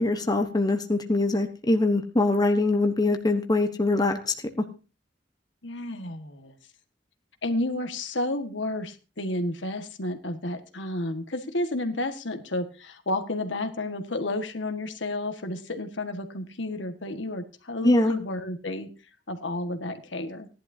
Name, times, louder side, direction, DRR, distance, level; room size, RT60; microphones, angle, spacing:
voice 1, 0.0-4.6 17.8-18.2, left 2 dB, 20° left, 5 dB, 1.2 m, -23 dB
voice 2, 5.6-6.5 7.4-18.9 19.3-20.5, left 1 dB, 80° left, 7 dB, 1.7 m, -31 dB
17.5 x 11.0 x 2.8 m, 0.32 s
head